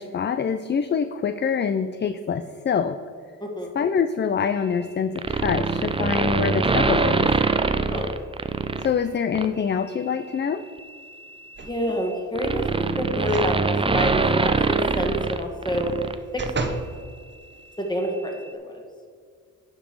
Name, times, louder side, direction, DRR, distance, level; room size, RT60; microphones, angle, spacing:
voice 1, 0.0-3.0 3.7-7.3 8.8-10.6, left 6 dB, 35° left, 11 dB, 0.4 m, -25 dB
voice 2, 3.4-3.7 7.9-8.1 11.6-12.6 13.0-15.9 16.3-16.5 17.8-18.8, equal, 15° left, 1 dB, 1.9 m, -28 dB
sound 1, 5.2-8.9 9.3-9.6 10.8-16.1 16.4-16.5, right 4 dB, 15° right, 0.5 m, -23 dB
sound 2, 11.6-12.1 13.2-13.6 14.0-14.1 15.7-16.9 17.5-17.6, right 3 dB, 35° right, 1.0 m, -33 dB
9.8 x 5.2 x 4.7 m, 2.1 s
cardioid pair, 70°, 33 cm